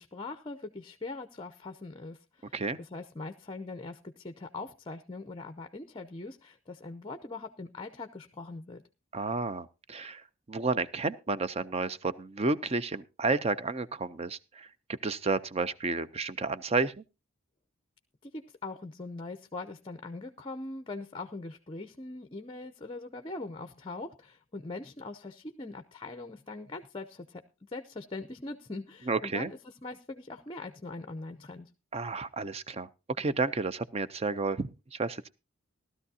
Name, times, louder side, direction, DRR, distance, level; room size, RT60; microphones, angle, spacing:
voice 1, 0.0-8.8 18.2-31.7, left 3 dB, 25° left, 9 dB, 0.6 m, -42 dB
voice 2, 9.1-10.2 10.5-17.0 29.1-29.5 31.9-32.9 33.2-35.3, right 3 dB, 30° right, 14 dB, 0.5 m, -31 dB
16.5 x 12.5 x 2.7 m, 0.28 s
head